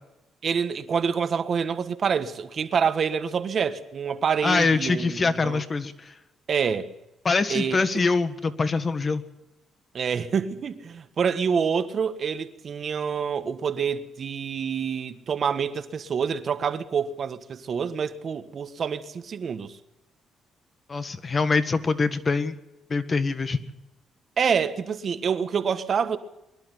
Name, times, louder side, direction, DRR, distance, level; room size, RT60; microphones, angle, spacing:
voice 1, 0.4-5.6 6.5-6.9 7.5-8.0 9.9-19.7 24.4-26.2, right 6 dB, 50° right, 1.5 m, -27 dB
voice 2, 4.4-6.1 7.2-9.2 20.9-22.6 22.9-23.6, left 4 dB, 35° left, 1.6 m, -24 dB
22.5 x 11.5 x 10.0 m
cardioid pair, 90°, 0 cm